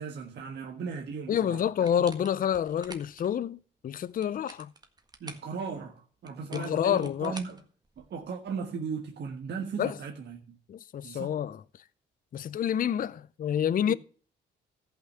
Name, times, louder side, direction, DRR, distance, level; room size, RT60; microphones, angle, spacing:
voice 1, 0.0-1.6 5.2-7.6 8.0-10.6 11.0-11.3 13.9-14.0, right 5 dB, 60° right, 1.5 m, -37 dB
voice 2, 1.3-4.7 6.5-7.4 9.8-10.0 10.7-11.6 12.3-13.9, left 9 dB, 45° left, 0.5 m, -28 dB
sound 1, 1.8-3.3 4.1-5.5 6.3-8.3, right 2 dB, 20° right, 1.6 m, -48 dB
14.0 x 5.9 x 6.7 m
cardioid pair, 90°, 20 cm